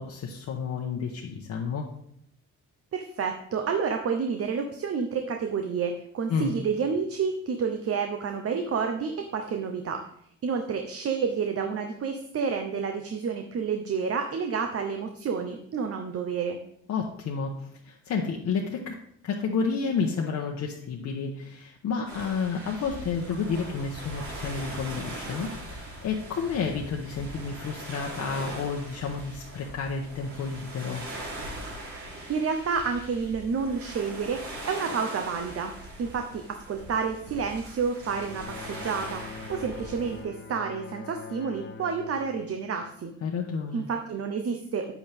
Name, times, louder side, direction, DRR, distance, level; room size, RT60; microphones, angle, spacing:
voice 1, 0.0-1.9 6.3-6.5 16.9-17.5 17.8-18.9 19.2-25.5 25.7-31.1 43.2-43.9, left 5 dB, 65° left, -1 dB, 1.1 m, -30 dB
voice 2, 2.9-10.0 10.4-16.6 32.3-35.7 36.0-43.1 43.7-44.9, right 5 dB, 50° right, 5 dB, 0.9 m, -29 dB
sound 1, 22.1-40.2, right 1 dB, 70° right, 4.0 m, -41 dB
Bowed string instrument, 38.1-43.5, left 6 dB, 40° left, 0.7 m, -44 dB
8.6 x 8.4 x 3.5 m, 0.68 s
cardioid pair, 90°, 30 cm